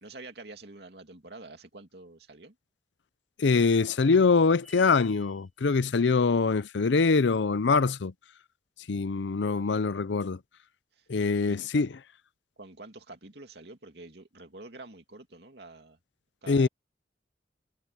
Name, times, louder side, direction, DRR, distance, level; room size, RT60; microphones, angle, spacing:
voice 1, 0.0-2.5 11.0-11.1 11.5-11.7 12.6-16.0 16.4-16.7, right 2 dB, 65° right, 2.6 m, -47 dB
voice 2, 3.4-8.1 8.9-10.4 11.1-12.0 16.5-16.7, left 4 dB, 80° left, 0.6 m, -24 dB
sound 1, 4.6-5.5, equal, ahead, 2.2 m, -53 dB
head